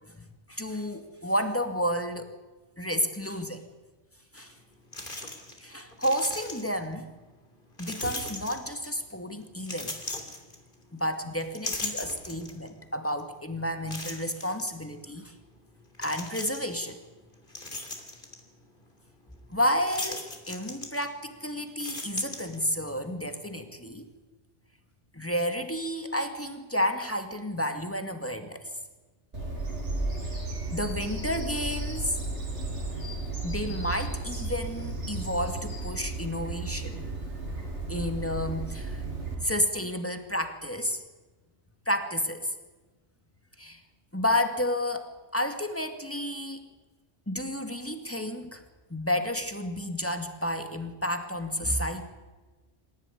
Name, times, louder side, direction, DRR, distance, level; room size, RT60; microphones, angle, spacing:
voice 1, 0.0-2.3 2.8-3.6 4.3-4.5 5.6-7.1 7.8-10.0 10.9-15.3 16.0-17.0 19.5-24.1 25.1-28.7 30.7-32.2 33.4-37.0 37.9-39.0 39.3-41.0 41.9-42.5 43.6-43.8 44.1-46.7 47.3-48.6 48.9-52.0, left 1 dB, 10° left, 6 dB, 2.2 m, -31 dB
sound 1, 4.4-4.5 4.9-5.6 5.9-6.9 7.8-9.0 9.6-11.0 11.4-12.7 13.2-13.3 13.9-14.7 15.9-16.8 17.3-18.4 19.8-21.3 21.6-22.9, left 2 dB, 45° left, 3.4 m, -38 dB
Bird vocalization bird call bird song, 29.3-39.4, right 2 dB, 85° right, 5.7 m, -34 dB
27.0 x 15.5 x 9.9 m, 1.2 s
omnidirectional pair, 1.2 m